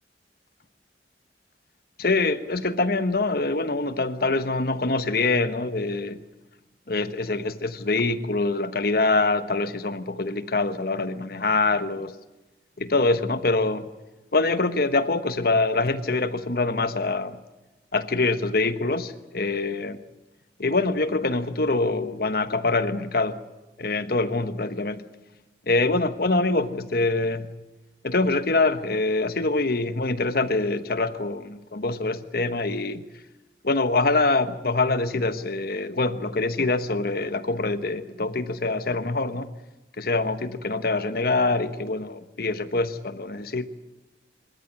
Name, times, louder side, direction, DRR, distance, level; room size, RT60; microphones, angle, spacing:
voice 1, 2.0-6.2 6.9-12.1 12.8-13.9 14.3-17.4 17.9-20.0 20.6-23.4 23.8-25.0 25.7-27.5 28.0-33.0 33.6-39.5 40.0-43.7, left 3 dB, 55° left, 11 dB, 1.2 m, -24 dB
25.5 x 13.5 x 9.9 m, 1.1 s
head